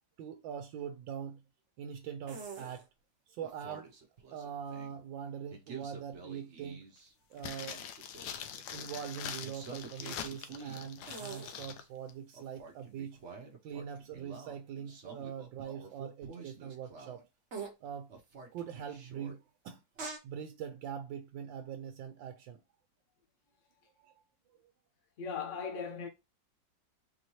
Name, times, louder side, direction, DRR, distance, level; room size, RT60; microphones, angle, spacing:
voice 1, 0.2-1.4 1.8-2.9 3.3-3.9 4.3-6.8 7.3-7.9 8.7-13.2 13.6-17.3 17.8-18.1 18.5-19.8 20.2-22.6 24.0-24.1, right 8 dB, 80° right, 1.3 m, -43 dB
sound 1, 2.3-2.8 3.4-5.0 5.5-7.1 7.4-8.9 9.4-11.9 12.3-17.2 17.5-17.7 18.1-19.3 20.0-20.2, right 5 dB, 50° right, 0.9 m, -47 dB
sound 2, 7.4-11.8 12.1-12.2, left 9 dB, 80° left, 1.3 m, -43 dB
voice 2, 25.2-26.1, left 6 dB, 45° left, 1.1 m, -38 dB
4.4 x 2.7 x 3.0 m
omnidirectional pair, 2.0 m